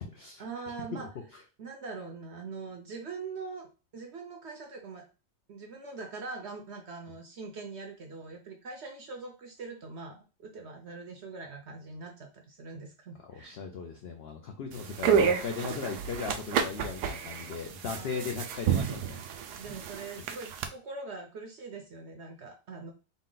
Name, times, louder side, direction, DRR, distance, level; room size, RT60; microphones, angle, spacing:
voice 1, 0.4-1.1 1.6-5.1 5.5-13.6 17.8-18.4 19.6-22.9, right 4 dB, 55° right, 2 dB, 0.8 m, -42 dB
voice 2, 0.9-1.4 13.4-19.2, left 5 dB, 70° left, 3 dB, 0.6 m, -38 dB
sound 1, 14.7-20.7, right 7 dB, 80° right, 1.1 m, -30 dB
4.1 x 2.2 x 3.7 m, 0.32 s
omnidirectional pair, 1.7 m